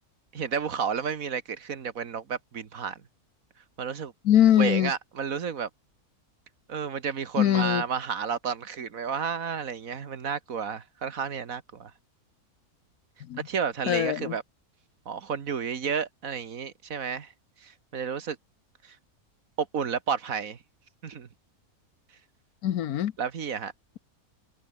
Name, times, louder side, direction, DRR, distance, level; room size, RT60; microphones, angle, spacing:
voice 1, 0.3-3.0 3.8-4.1 4.6-5.7 6.7-11.9 13.5-14.4 15.1-17.3 17.6-18.4 18.8-19.0 19.6-20.6 21.0-21.3 23.2-23.7, right 6 dB, 65° right, 1.8 m, -31 dB
voice 2, 4.2-4.9 7.4-7.8 13.3-13.4 13.9-14.3 22.6-23.1, left 11 dB, 75° left, 1.3 m, -22 dB
omnidirectional pair, 1.6 m